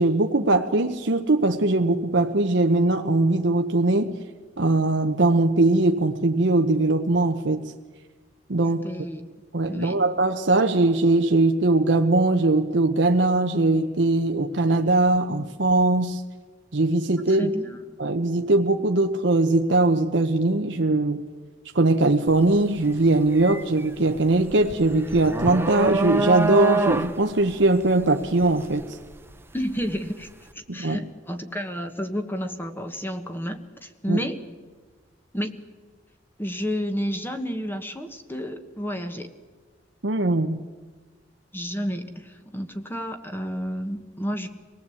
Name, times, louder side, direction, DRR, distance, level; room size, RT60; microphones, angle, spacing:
voice 1, 0.0-4.1 4.6-7.6 8.5-8.8 9.5-16.2 16.7-17.5 18.0-21.2 21.7-28.8 30.7-31.0 34.1-34.2 40.0-40.6, right 2 dB, 75° right, 5 dB, 1.0 m, -21 dB
voice 2, 8.6-9.2 9.7-10.0 17.4-17.8 29.5-30.3 30.5-34.4 35.3-35.5 36.4-39.3 41.5-44.5, equal, 10° left, 7 dB, 1.4 m, -31 dB
sound 1, 22.3-22.5 22.9-29.9, right 2 dB, 15° right, 1.0 m, -27 dB
25.0 x 18.5 x 8.6 m, 1.4 s
head